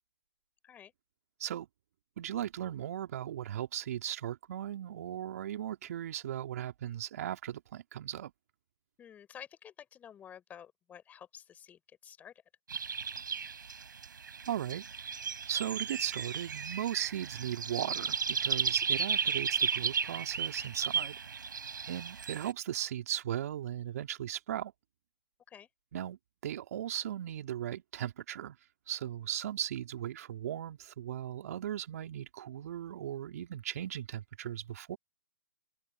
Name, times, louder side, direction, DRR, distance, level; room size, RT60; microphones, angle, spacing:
voice 1, 2.2-8.3 14.5-14.9 15.5-21.1 21.9-24.7 25.9-26.2 26.4-28.6 28.9-35.0, right 11 dB, 50° right, 2.7 m, -37 dB
voice 2, 9.0-12.3 25.5-25.7, left 9 dB, 15° left, 5.7 m, -51 dB
sound 1, 12.7-22.5, right 6 dB, 70° right, 5.1 m, -34 dB
open air
figure-of-eight pair, 135°, 11 cm